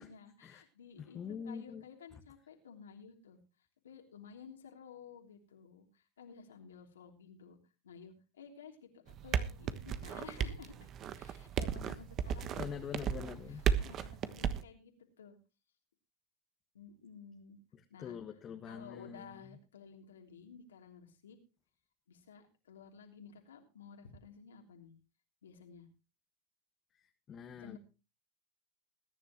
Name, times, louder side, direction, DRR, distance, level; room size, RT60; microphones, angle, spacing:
voice 1, 0.0-1.2 1.4-7.6 7.8-13.2 13.8-15.4 16.7-17.6 17.9-18.2 18.7-21.4 22.1-24.9 25.4-25.9 27.6-27.8, left 6 dB, 85° left, 3 dB, 3.1 m, -54 dB
voice 2, 1.0-1.8 2.1-2.2 11.8-11.9 12.6-13.6 17.7-19.6 26.9-27.8, left 7 dB, 35° left, 5 dB, 1.5 m, -45 dB
sound 1, 9.1-14.6, right 8 dB, 40° right, 1.2 m, -35 dB
21.0 x 10.5 x 3.0 m, 0.30 s
hypercardioid pair, 95°, 0 cm